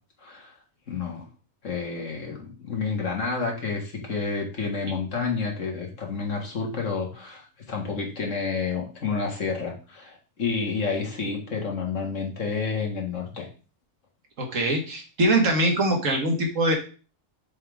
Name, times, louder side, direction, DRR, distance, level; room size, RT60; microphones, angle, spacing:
voice 1, 0.2-0.5 0.9-1.2 1.6-13.5, left 4 dB, 70° left, 1 dB, 2.1 m, -30 dB
voice 2, 14.4-16.7, right 1 dB, 75° right, 2 dB, 1.9 m, -23 dB
6.8 x 3.7 x 4.8 m, 0.35 s
omnidirectional pair, 1.3 m